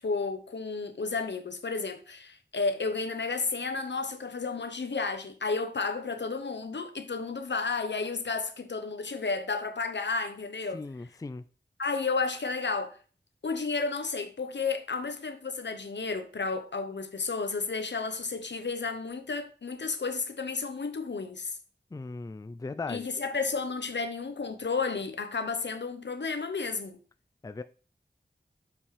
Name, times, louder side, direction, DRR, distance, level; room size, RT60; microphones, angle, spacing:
voice 1, 0.0-10.8 11.8-13.0 13.4-21.6 22.9-27.0, left 4 dB, 80° left, 0.9 m, -32 dB
voice 2, 10.7-11.4 21.9-23.0 27.4-27.6, left 3 dB, 20° left, 0.4 m, -38 dB
7.1 x 5.7 x 3.3 m
wide cardioid pair, 70°, 18 cm